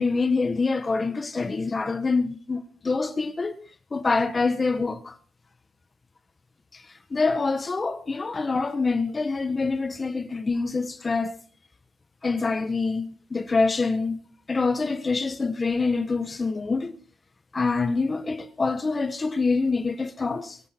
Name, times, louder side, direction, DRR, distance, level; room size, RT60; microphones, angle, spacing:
voice 1, 0.0-3.6 3.9-5.2 6.7-11.4 12.2-14.2 14.5-16.9 17.5-20.6, left 4 dB, 30° left, 1.4 m, -26 dB
24.0 x 11.0 x 4.5 m
cardioid pair, 90°, 0 cm